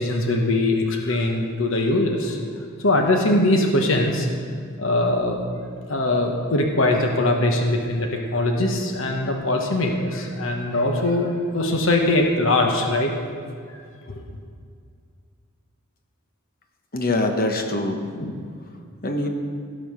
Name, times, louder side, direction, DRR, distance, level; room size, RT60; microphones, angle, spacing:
voice 1, 0.0-2.4 2.8-4.3 4.8-5.4 5.9-13.1 14.1-14.2, left 2 dB, 65° left, 2 dB, 1.2 m, -21 dB
voice 2, 16.9-18.3 19.0-19.3, left 2 dB, 45° left, 4 dB, 1.1 m, -24 dB
17.0 x 5.7 x 5.6 m, 2.2 s
head